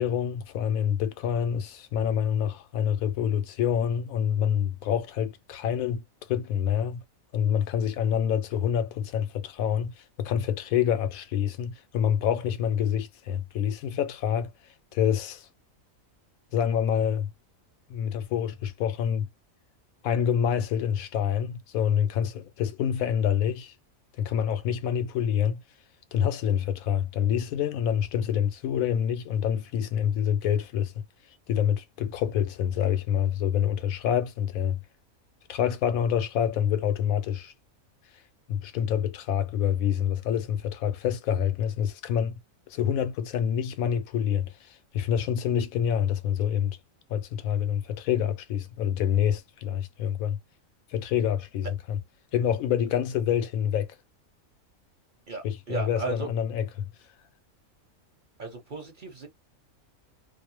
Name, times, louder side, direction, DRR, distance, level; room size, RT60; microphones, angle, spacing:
voice 1, 0.0-6.0 6.3-7.0 7.3-9.9 10.2-14.5 14.9-15.5 16.5-17.3 17.9-19.3 20.0-23.7 24.2-25.6 26.1-30.9 31.5-34.8 35.5-37.5 38.5-42.4 42.7-46.8 47.1-50.4 50.9-52.0 52.3-54.0 55.4-56.9, left 9 dB, 85° left, 1.0 m, -27 dB
voice 2, 55.3-56.3 58.4-59.3, right 4 dB, 45° right, 0.8 m, -35 dB
2.5 x 2.0 x 2.8 m
omnidirectional pair, 1.4 m